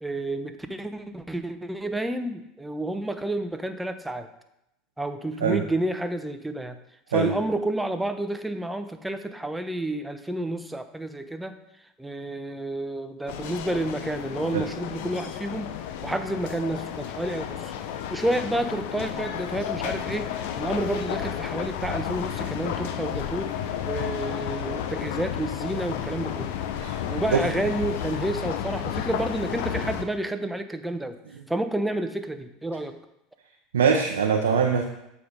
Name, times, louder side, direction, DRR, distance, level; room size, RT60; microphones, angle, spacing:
voice 1, 0.0-4.3 5.0-6.8 7.1-11.6 12.0-15.7 16.0-17.7 18.1-23.5 23.9-26.5 27.1-31.2 31.5-33.0, right 1 dB, 5° right, 8 dB, 0.7 m, -30 dB
sound 1, 13.3-30.0, left 9 dB, 70° left, 0.6 m, -32 dB
voice 2, 33.7-34.8, right 6 dB, 90° right, 1 dB, 0.7 m, -22 dB
7.2 x 4.8 x 5.1 m, 0.83 s
hypercardioid pair, 85°, 0 cm